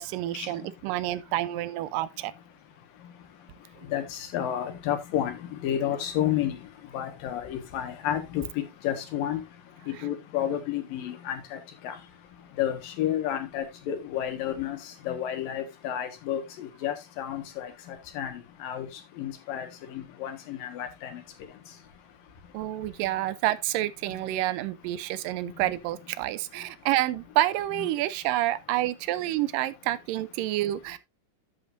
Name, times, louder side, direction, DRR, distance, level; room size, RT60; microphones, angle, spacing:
voice 1, 0.0-2.3 22.5-31.0, right 15 dB, 90° right, 2.3 m, -28 dB
voice 2, 3.9-6.6 6.9-9.4 9.9-11.6 11.8-11.9 12.6-14.8 15.1-18.9 19.2-19.7 19.9-21.2, left 10 dB, 85° left, 3.2 m, -31 dB
11.0 x 8.0 x 2.6 m
omnidirectional pair, 3.9 m